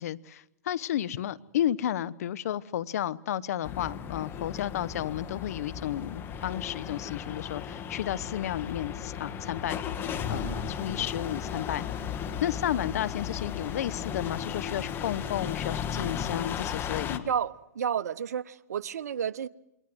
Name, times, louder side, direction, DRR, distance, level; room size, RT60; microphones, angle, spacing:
voice 1, 0.0-9.8 10.3-11.9 12.4-17.3, left 11 dB, 65° left, 0.9 m, -32 dB
sound 1, 3.6-17.2, left 8 dB, 25° left, 1.7 m, -35 dB
voice 2, 17.2-19.5, right 8 dB, 75° right, 0.9 m, -31 dB
28.0 x 22.0 x 7.9 m
hypercardioid pair, 125°, 9 cm